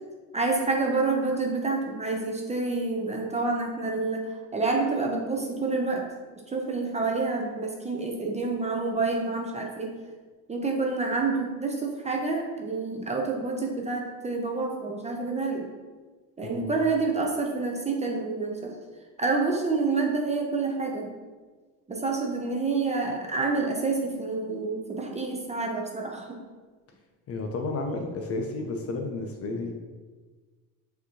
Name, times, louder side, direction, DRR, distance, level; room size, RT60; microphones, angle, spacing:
voice 1, 0.3-6.1 6.5-9.9 10.5-15.7 16.4-18.7 19.2-21.1 21.9-26.4, right 3 dB, 15° right, 0 dB, 0.5 m, -28 dB
voice 2, 27.3-29.7, left 3 dB, 35° left, 3 dB, 0.5 m, -32 dB
5.7 x 2.8 x 2.8 m, 1.4 s
supercardioid pair, 100°, 43 cm